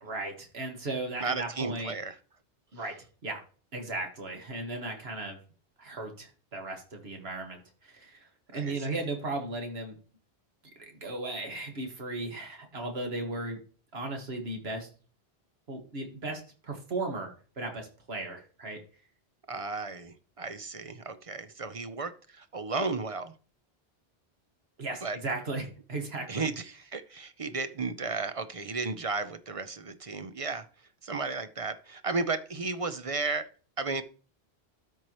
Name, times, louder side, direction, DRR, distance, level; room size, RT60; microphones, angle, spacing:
voice 1, 0.0-1.9 2.7-3.0 3.2-3.4 3.7-5.4 5.8-10.0 10.9-13.6 13.9-14.9 15.7-17.3 17.6-18.8 24.8-26.5, right 2 dB, 75° right, 3 dB, 1.9 m, -36 dB
voice 2, 1.2-2.2 8.5-9.0 19.5-23.3 25.0-25.2 26.3-30.7 31.0-33.5 33.8-34.0, right 3 dB, 40° right, 11 dB, 0.6 m, -34 dB
13.0 x 4.6 x 3.0 m, 0.38 s
omnidirectional pair, 1.1 m